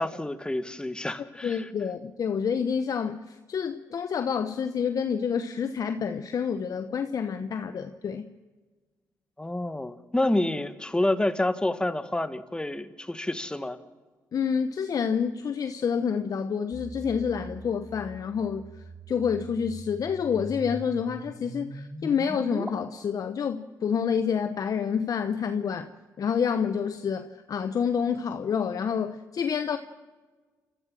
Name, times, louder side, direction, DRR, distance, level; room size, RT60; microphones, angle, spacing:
voice 1, 0.0-1.6 9.4-13.8, left 1 dB, 10° left, 1.5 m, -28 dB
voice 2, 1.4-8.3 14.3-25.9 26.2-29.8, left 7 dB, 60° left, 1.0 m, -28 dB
sound 1, 16.7-22.7, equal, 10° right, 3.0 m, -41 dB
28.0 x 14.0 x 7.5 m
supercardioid pair, 60°, 7 cm